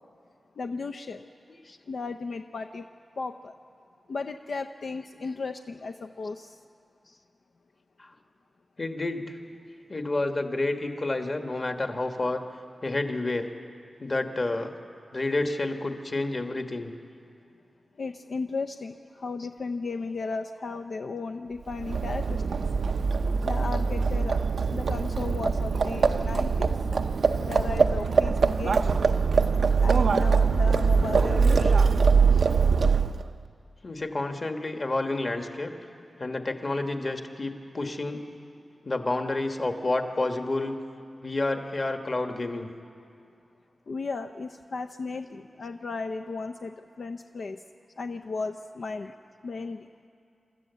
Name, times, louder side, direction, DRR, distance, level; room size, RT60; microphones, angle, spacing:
voice 1, 0.6-1.2 1.9-2.8 3.2-3.5 4.1-6.5 18.0-22.4 23.4-24.4 24.7-26.7 27.4-28.9 29.8-31.8 43.9-47.6 48.0-49.1 49.4-49.9, left 4 dB, 65° left, 5 dB, 0.6 m, -35 dB
voice 2, 8.8-9.4 9.9-12.4 12.8-13.5 14.0-14.7 15.1-16.9 19.4-19.5 33.8-35.7 36.2-38.2 38.8-40.8 41.2-42.7, left 2 dB, 35° left, 5 dB, 1.4 m, -29 dB
Livestock farm animals working animals, 21.7-33.3, right 5 dB, 75° right, 0.6 m, -23 dB
27.5 x 13.5 x 8.1 m, 2.5 s
wide cardioid pair, 145°, 0 cm